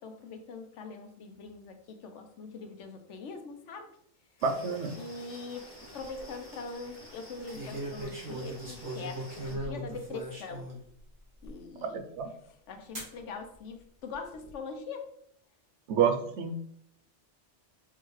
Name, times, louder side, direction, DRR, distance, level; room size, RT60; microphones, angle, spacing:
voice 1, 0.0-3.9 5.0-5.7 5.9-10.7 11.4-12.0 12.5-15.1, left 4 dB, 85° left, 6 dB, 1.0 m, -42 dB
sound 1, 4.4-9.5, left 1 dB, 10° left, 1.2 m, -50 dB
voice 2, 4.4-4.9 11.8-12.3 15.9-16.6, right 6 dB, 75° right, 7 dB, 0.9 m, -28 dB
sound 2, 5.8-6.2 7.5-10.8 11.4-11.5 12.9-13.2 14.0-14.5, right 1 dB, 45° right, 2.0 m, -39 dB
5.7 x 2.7 x 3.1 m, 0.70 s
omnidirectional pair, 1.2 m